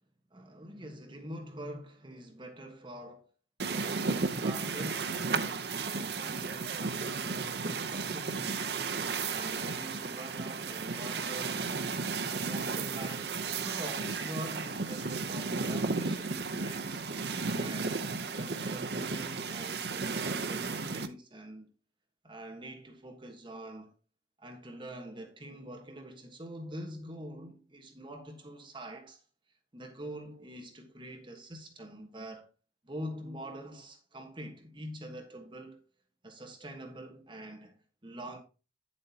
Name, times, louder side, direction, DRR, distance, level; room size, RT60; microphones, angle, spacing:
voice 1, 0.3-3.3 3.7-5.2 5.9-7.6 7.9-9.0 9.3-11.6 12.3-13.3 13.6-17.0 17.5-21.7 22.2-23.9 24.4-29.2 29.7-32.5 32.8-35.8 36.2-38.4, right 1 dB, 30° right, 1.3 m, -45 dB
sound 1, 3.6-21.1, right 4 dB, 65° right, 0.8 m, -34 dB
10.0 x 7.5 x 2.9 m
head